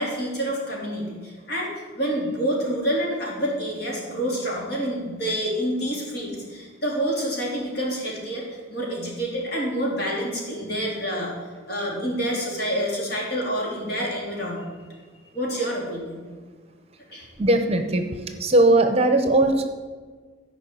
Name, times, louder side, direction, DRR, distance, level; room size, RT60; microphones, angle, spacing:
voice 1, 0.0-11.3 11.7-14.8 15.3-16.2 17.1-17.3, equal, 50° left, -3 dB, 3.4 m, -28 dB
voice 2, 17.4-18.0 18.4-19.6, right 2 dB, 30° right, 7 dB, 0.8 m, -18 dB
14.0 x 5.5 x 7.7 m, 1.5 s
head